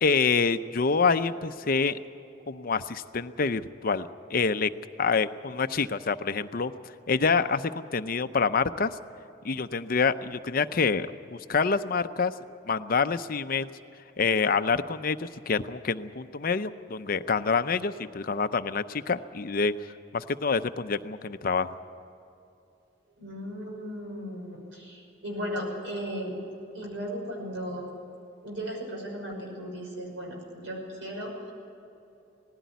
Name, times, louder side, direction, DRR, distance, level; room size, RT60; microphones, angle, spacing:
voice 1, 0.0-2.0 2.5-4.7 5.0-6.7 7.1-8.9 9.4-12.3 12.7-13.7 14.2-19.7 20.1-21.8, left 5 dB, 50° left, 11 dB, 0.7 m, -26 dB
voice 2, 23.2-26.4 26.7-27.8 28.4-31.5, equal, 75° right, 0 dB, 6.0 m, -36 dB
19.0 x 15.5 x 9.4 m, 2.7 s
head